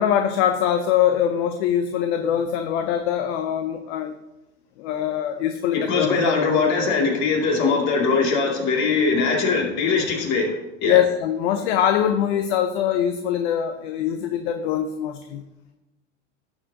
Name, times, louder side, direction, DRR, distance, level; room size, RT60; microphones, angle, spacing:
voice 1, 0.0-4.2 4.8-6.2 10.8-15.4, left 10 dB, 65° left, 7 dB, 0.8 m, -23 dB
voice 2, 5.7-11.0, left 4 dB, 50° left, -1 dB, 2.6 m, -21 dB
11.5 x 7.2 x 2.8 m, 0.99 s
hypercardioid pair, 105°, 37 cm